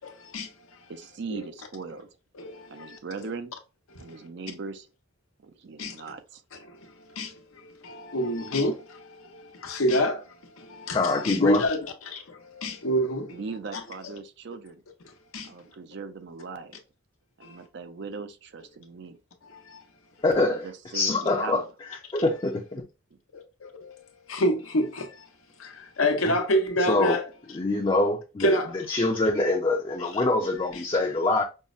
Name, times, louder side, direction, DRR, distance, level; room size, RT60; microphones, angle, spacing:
voice 1, 0.0-0.5 1.3-1.4 2.3-3.3 5.8-5.9 6.5-6.6 7.2-7.3 7.8-10.2 10.6-13.3 13.7-13.8 15.3-15.5 19.5-19.8 23.6-24.0 24.3-25.1 25.6-27.3 28.4-28.7, left 1 dB, 90° left, 0.9 m, -27 dB
voice 2, 0.9-2.1 2.7-3.5 4.0-4.9 5.4-6.4 13.3-14.8 15.4-16.8 17.4-19.2 20.5-21.7 23.1-23.2, right 4 dB, 55° right, 0.5 m, -39 dB
voice 3, 10.9-11.6 20.2-20.7 20.9-21.6 22.1-22.8 26.2-26.4 26.8-27.2 27.5-31.4, left 2 dB, 25° left, 0.5 m, -24 dB
5.4 x 2.1 x 2.4 m
head